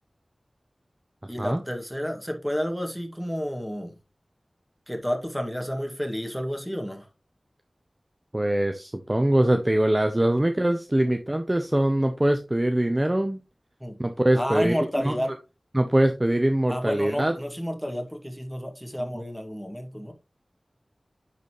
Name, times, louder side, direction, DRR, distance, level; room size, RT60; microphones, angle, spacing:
voice 1, 1.3-3.9 4.9-7.1 13.8-13.9 14.3-15.3 16.7-20.1, equal, ahead, 2.0 m, -30 dB
voice 2, 8.3-13.4 14.0-15.1 15.7-17.4 19.1-19.2, right 1 dB, 25° right, 0.7 m, -23 dB
10.5 x 4.1 x 3.0 m
wide cardioid pair, 40°, 0 cm